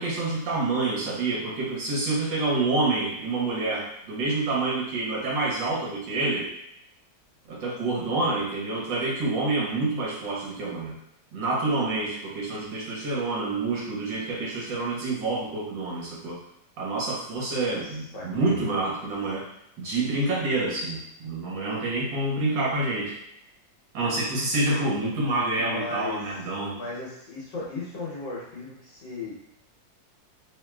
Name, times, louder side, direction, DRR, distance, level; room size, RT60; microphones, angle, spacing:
voice 1, 0.0-6.5 7.5-11.0 11.3-16.4 16.8-19.5 19.8-23.2 23.9-26.8, right 2 dB, 80° right, -4 dB, 1.8 m, -27 dB
voice 2, 18.1-18.7 25.5-26.2 26.7-29.4, left 3 dB, 70° left, -7 dB, 1.6 m, -36 dB
3.7 x 3.5 x 2.3 m, 0.79 s
omnidirectional pair, 2.0 m